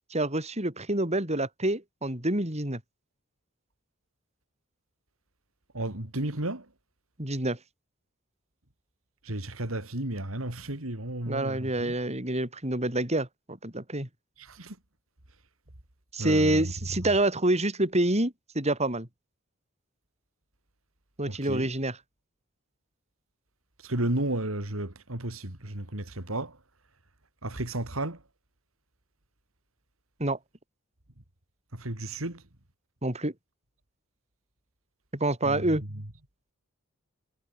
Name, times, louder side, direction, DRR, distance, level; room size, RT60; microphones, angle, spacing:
voice 1, 0.1-2.8 7.2-7.6 11.3-14.1 16.1-19.1 21.2-22.0 30.2-30.4 33.0-33.3 35.1-35.8, right 1 dB, 30° right, 6.0 m, -27 dB
voice 2, 5.7-6.7 9.2-11.9 14.4-14.8 16.2-16.7 21.3-21.7 23.8-26.6 27.4-28.2 31.7-32.4 35.4-35.8, right 1 dB, 80° right, 3.4 m, -33 dB
head